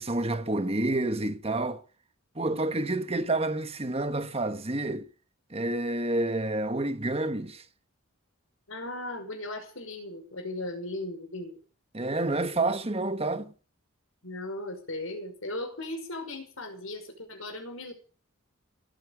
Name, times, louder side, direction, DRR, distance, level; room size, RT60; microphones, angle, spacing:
voice 1, 0.0-1.8 2.3-5.1 5.5-7.6 11.9-13.5, right 2 dB, 25° right, 1.3 m, -29 dB
voice 2, 8.7-11.6 14.2-17.9, left 2 dB, 70° left, 5.4 m, -37 dB
17.5 x 8.8 x 8.6 m
head